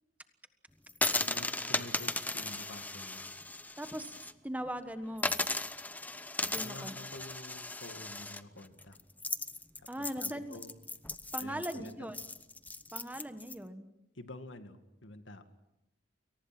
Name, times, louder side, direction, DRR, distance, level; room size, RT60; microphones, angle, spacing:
sound 1, 0.9-4.3 4.7-4.8 5.2-13.5, left 2 dB, 10° left, 0.8 m, -36 dB
voice 1, 1.2-3.3 6.6-9.0 9.8-10.8 11.4-12.1 14.2-15.4, left 1 dB, 75° left, 8 dB, 2.2 m, -49 dB
voice 2, 3.8-5.3 6.5-7.0 9.9-10.6 11.3-12.2 12.9-13.9, right 1 dB, 10° right, 9 dB, 1.4 m, -40 dB
29.5 x 23.0 x 6.1 m, 0.90 s
head